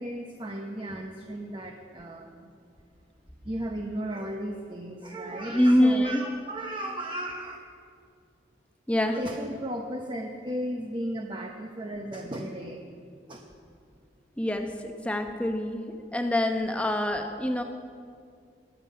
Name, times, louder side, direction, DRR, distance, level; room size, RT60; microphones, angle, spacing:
voice 1, 0.0-2.4 3.4-7.6 9.1-12.8 13.3-13.4, right 1 dB, 25° right, 2 dB, 0.8 m, -35 dB
voice 2, 5.5-6.2 8.9-9.2 14.4-17.6, left 1 dB, 5° left, 5 dB, 0.8 m, -25 dB
21.0 x 7.4 x 5.6 m, 2.3 s
head